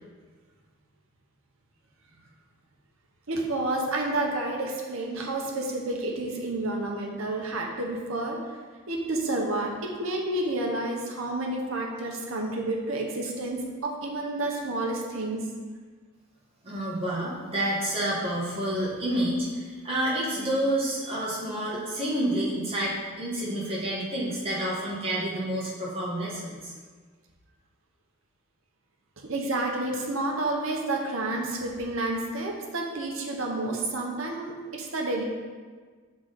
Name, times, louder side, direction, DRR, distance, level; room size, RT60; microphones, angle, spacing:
voice 1, 3.3-8.4 8.9-15.4 29.3-35.2, right 2 dB, 65° right, 0 dB, 0.9 m, -30 dB
voice 2, 16.6-26.7, right 1 dB, 25° right, -6 dB, 1.3 m, -29 dB
6.1 x 3.9 x 4.0 m, 1.5 s
head